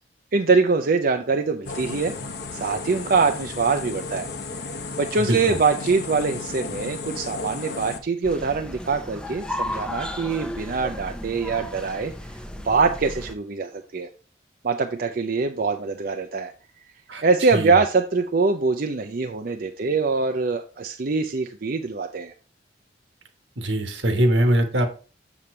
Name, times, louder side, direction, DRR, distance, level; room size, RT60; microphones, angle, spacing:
voice 1, 0.3-2.1 2.5-4.3 5.0-12.1 12.6-14.1 14.6-16.5 17.2-22.3, right 4 dB, 50° right, 5 dB, 0.5 m, -23 dB
sound 1, 1.7-8.0, left 4 dB, 60° left, 0.9 m, -34 dB
voice 2, 5.2-5.6 17.1-17.2 17.5-17.7 23.6-24.9, right 1 dB, 80° right, 6 dB, 1.4 m, -22 dB
sound 2, 8.2-13.3, left 1 dB, 5° left, 0.6 m, -34 dB
7.2 x 6.8 x 3.2 m, 0.36 s
head